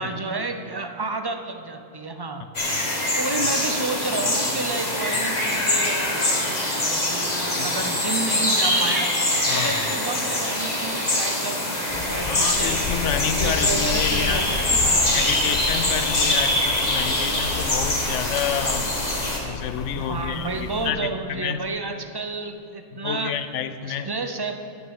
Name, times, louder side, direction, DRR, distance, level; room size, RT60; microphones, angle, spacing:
voice 1, 0.0-2.4 3.2-9.1 9.5-12.8 13.3-15.5 19.9-23.3 23.8-24.5, right 3 dB, 30° right, 7 dB, 0.5 m, -31 dB
sound 1, 2.5-19.4, left 1 dB, 35° left, 1.7 m, -24 dB
voice 2, 9.5-9.8 12.2-14.4 15.0-19.0 19.4-21.6 22.9-24.1, left 8 dB, 80° left, 12 dB, 1.0 m, -29 dB
Rain, 11.9-20.9, left 5 dB, 55° left, 0.5 m, -33 dB
10.5 x 6.2 x 8.8 m, 2.6 s
omnidirectional pair, 1.2 m